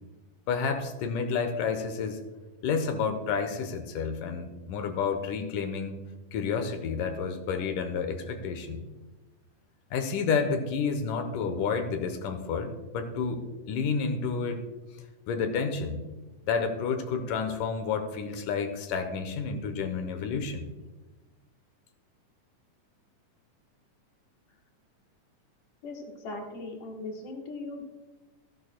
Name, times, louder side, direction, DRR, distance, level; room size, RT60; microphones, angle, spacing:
voice 1, 0.5-2.2 2.6-6.0 6.3-8.8 9.9-14.6 15.3-16.1 16.4-20.7, left 5 dB, 85° left, 7 dB, 2.5 m, -30 dB
voice 2, 25.8-27.9, left 2 dB, 55° left, 1 dB, 2.1 m, -39 dB
15.5 x 11.0 x 2.2 m, 1.2 s
omnidirectional pair, 3.6 m